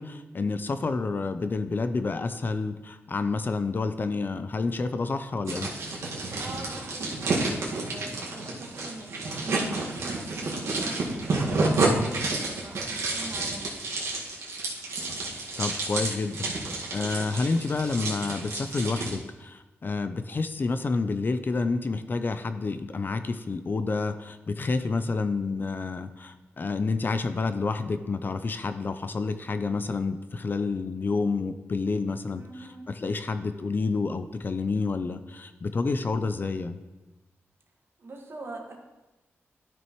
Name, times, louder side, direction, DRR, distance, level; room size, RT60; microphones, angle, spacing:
voice 1, 0.0-5.7 15.6-16.5 16.9-36.8, left 4 dB, 40° left, 10 dB, 0.5 m, -29 dB
sound 1, 5.5-19.1, right 2 dB, 80° right, 1.8 m, -30 dB
voice 2, 6.4-9.6 10.0-13.7 32.4-32.8 38.0-38.8, right 2 dB, 55° right, 1 dB, 1.7 m, -43 dB
12.0 x 6.1 x 3.1 m, 1.1 s
cardioid pair, 85°, 5 cm